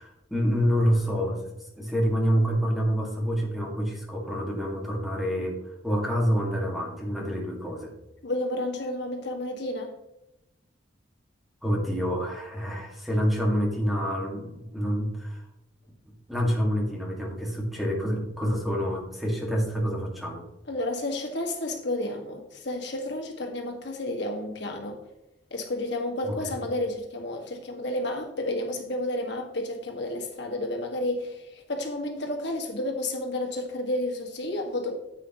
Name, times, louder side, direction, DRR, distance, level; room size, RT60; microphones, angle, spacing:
voice 1, 0.0-1.4 1.8-7.9 11.6-15.4 16.3-20.4 26.3-26.6, equal, ahead, -2 dB, 1.9 m, -27 dB
voice 2, 8.2-10.0 20.7-25.0 25.5-34.9, left 1 dB, 65° left, 2 dB, 1.8 m, -31 dB
9.6 x 8.3 x 3.0 m, 0.90 s
head